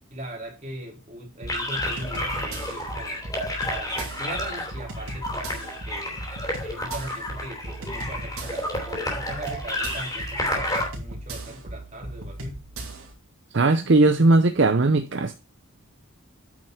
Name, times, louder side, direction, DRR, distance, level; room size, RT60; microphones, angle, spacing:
voice 1, 0.1-3.2 3.7-6.2 6.6-12.6, right 1 dB, 30° right, 3.1 m, -39 dB
sound 1, 1.4-13.1, right 1 dB, 80° right, 2.9 m, -38 dB
sound 2, 1.5-10.9, left 1 dB, 15° left, 3.0 m, -31 dB
voice 2, 13.5-15.3, right 2 dB, 55° right, 0.6 m, -18 dB
9.3 x 5.6 x 4.4 m
head